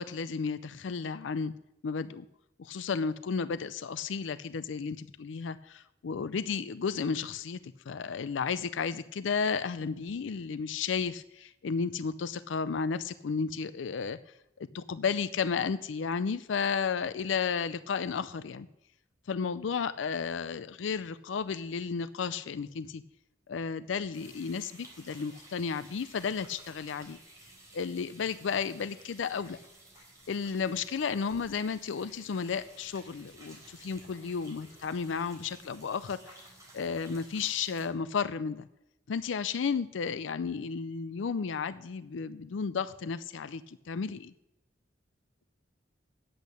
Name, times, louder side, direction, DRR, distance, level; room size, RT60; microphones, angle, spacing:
voice 1, 0.0-1.5 1.8-2.3 2.6-14.2 14.6-18.7 19.3-23.0 23.5-27.2 27.7-29.6 30.3-36.4 36.7-38.7 39.1-44.3, left 5 dB, 75° left, 14 dB, 0.4 m, -33 dB
sound 1, 24.1-37.9, right 1 dB, 20° right, 4.0 m, -54 dB
10.5 x 8.3 x 6.5 m, 0.88 s
head